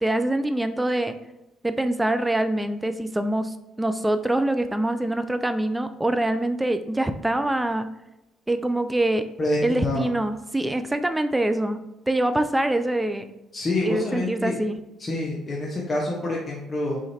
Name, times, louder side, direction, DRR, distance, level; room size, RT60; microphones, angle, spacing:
voice 1, 0.0-1.2 1.6-7.9 8.5-9.3 9.6-13.3 13.8-14.8, right 1 dB, 10° right, 9 dB, 0.3 m, -24 dB
voice 2, 9.4-10.1 13.5-14.6 15.0-17.0, left 2 dB, 35° left, -3 dB, 0.8 m, -27 dB
4.1 x 3.8 x 2.8 m, 0.92 s
hypercardioid pair, 50°, 0 cm